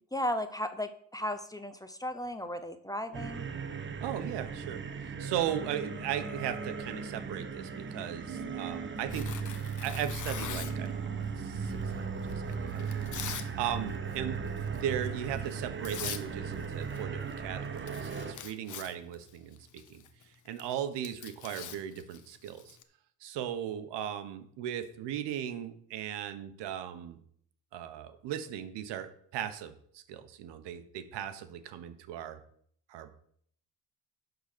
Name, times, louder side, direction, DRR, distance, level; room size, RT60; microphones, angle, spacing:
voice 1, 0.1-3.5, left 1 dB, 10° left, 9 dB, 0.8 m, -35 dB
sound 1, 3.1-18.3, right 5 dB, 30° right, 1.1 m, -37 dB
voice 2, 4.0-9.4 9.7-14.4 14.7-20.0 20.4-22.8 23.2-27.2 27.7-32.4 32.9-33.1, right 10 dB, 75° right, 10 dB, 1.1 m, -37 dB
Tearing, 9.1-10.9 11.6-13.5 13.8-14.2 14.6-14.8 15.5-15.6 15.8-16.3 16.5-17.0 17.3-17.4 17.6-22.8, left 9 dB, 45° left, 1.0 m, -43 dB
11.0 x 4.0 x 6.7 m, 0.63 s
cardioid pair, 95°, 42 cm